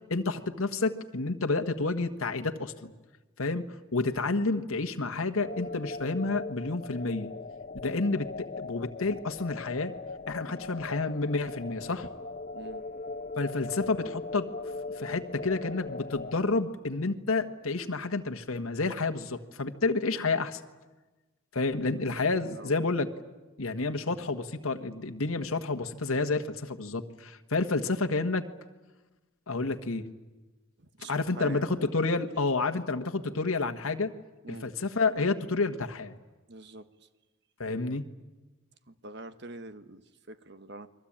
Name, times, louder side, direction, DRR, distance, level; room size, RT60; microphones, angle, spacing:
voice 1, 0.1-2.9 3.4-3.6 3.9-7.3 7.8-9.9 10.3-12.1 13.4-14.5 15.0-20.6 21.5-23.1 23.6-28.4 29.5-30.1 31.1-34.1 34.5-36.1 37.6-38.0, left 3 dB, 85° left, 6 dB, 1.5 m, -30 dB
sound 1, 5.4-16.6, left 3 dB, 35° left, 0.9 m, -40 dB
voice 2, 21.9-22.9 30.8-31.7 33.2-33.3 34.4-34.7 36.5-36.8 38.9-40.0 40.3-40.9, right 2 dB, 55° right, 11 dB, 1.3 m, -45 dB
29.5 x 22.0 x 8.8 m, 1.2 s
head